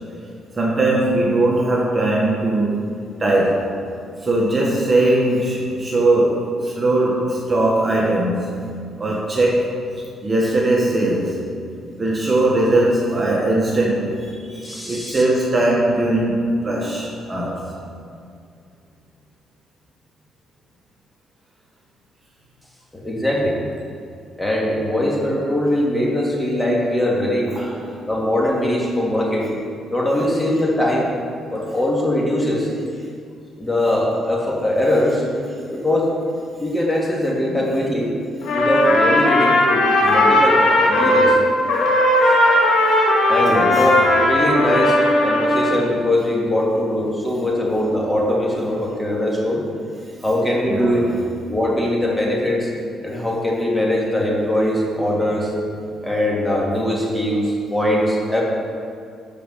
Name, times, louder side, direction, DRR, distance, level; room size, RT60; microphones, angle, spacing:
voice 1, 0.5-2.8 3.2-3.7 4.2-9.8 10.2-11.5 12.0-17.7 27.5-27.8 37.5-37.7 43.5-43.8 50.7-51.1, right 2 dB, 30° right, -3 dB, 1.6 m, -20 dB
voice 2, 14.6-15.2 22.9-23.6 24.4-27.6 28.1-29.5 29.9-31.1 31.5-32.7 33.6-35.2 35.7-36.1 36.6-38.1 38.5-41.4 43.3-49.6 50.2-51.0 51.5-52.7 53.0-55.5 56.0-58.4, left 1 dB, 10° left, -3 dB, 2.6 m, -21 dB
Trumpet, 38.4-41.4 41.7-45.8, left 1 dB, 85° left, 2.0 m, -16 dB
13.0 x 5.1 x 5.8 m, 2.3 s
cardioid pair, 90°, 0 cm